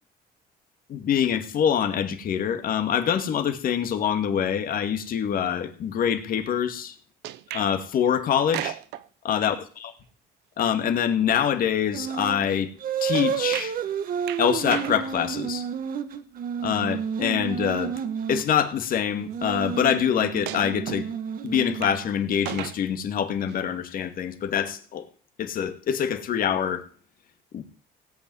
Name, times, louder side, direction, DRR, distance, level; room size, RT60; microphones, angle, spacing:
voice 1, 0.9-7.0 7.5-8.8 9.2-9.6 9.8-9.9 10.6-12.7 13.0-13.7 14.4-15.6 16.6-17.9 18.3-21.1 21.4-25.1 25.4-26.9 27.5-27.7, left 8 dB, 55° left, 8 dB, 2.2 m, -25 dB
sound 1, 7.2-7.7 8.4-9.1 13.1-13.8 14.3-15.0 16.9-17.0 18.2-18.3 20.5-21.1 21.5-22.0 22.3-22.8 23.5-23.6, right 14 dB, 85° right, 0.9 m, -35 dB
sound 2, 11.9-12.4 12.8-18.5 19.2-22.1, right 8 dB, 55° right, 1.5 m, -30 dB
17.5 x 6.0 x 9.3 m, 0.42 s
cardioid pair, 110°, 17 cm